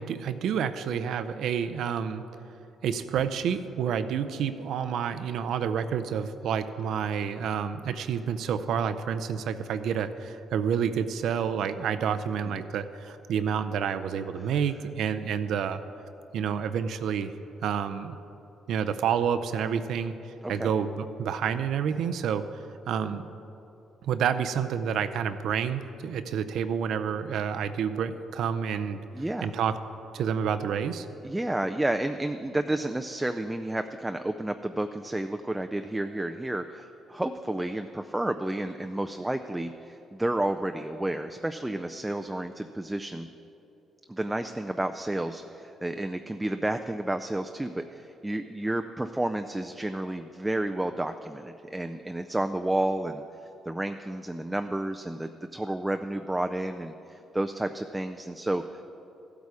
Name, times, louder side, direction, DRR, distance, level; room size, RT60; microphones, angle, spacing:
voice 1, 0.0-2.2 2.8-15.8 16.3-17.3 17.6-18.2 18.7-20.1 20.5-22.4 22.9-23.2 24.0-29.0 29.4-29.8 30.1-31.1, right 7 dB, 75° right, 10 dB, 0.5 m, -29 dB
voice 2, 29.1-29.5 31.2-43.3 44.1-53.2 53.7-58.8, right 1 dB, 10° right, 7 dB, 0.4 m, -31 dB
14.5 x 8.3 x 4.8 m, 2.9 s
cardioid pair, 90°, 0 cm